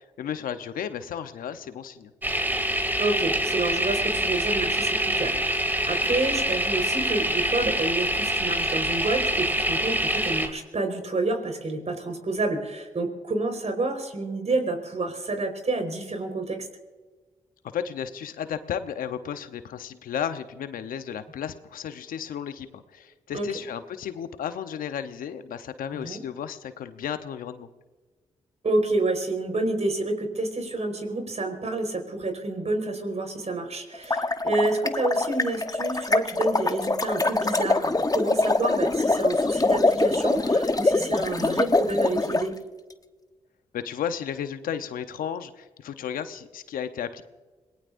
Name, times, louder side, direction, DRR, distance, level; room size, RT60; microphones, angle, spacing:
voice 1, 0.0-2.1 17.7-27.7 43.7-47.2, left 8 dB, 80° left, 10 dB, 0.9 m, -33 dB
sound 1, 2.2-10.5, right 1 dB, 15° right, 2.8 m, -25 dB
voice 2, 3.0-16.7 23.3-23.5 25.9-26.2 28.6-42.5, right 2 dB, 50° right, 5 dB, 4.6 m, -29 dB
sound 2, 33.9-42.4, left 2 dB, 25° left, 1.1 m, -24 dB
27.0 x 19.0 x 2.6 m, 1.3 s
supercardioid pair, 40°, 14 cm